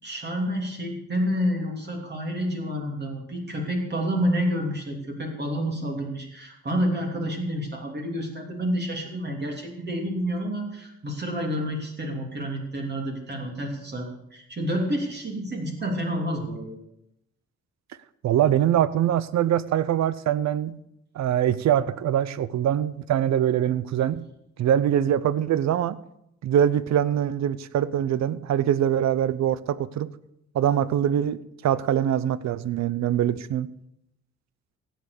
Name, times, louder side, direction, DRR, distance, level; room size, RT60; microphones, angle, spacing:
voice 1, 0.0-16.8, equal, 35° right, 1 dB, 3.1 m, -29 dB
voice 2, 18.2-20.8 21.1-24.3 24.6-26.0 26.4-30.1 30.5-33.7, right 10 dB, 65° right, 17 dB, 0.8 m, -23 dB
16.5 x 7.5 x 6.7 m, 0.80 s
cardioid pair, 90°, 30 cm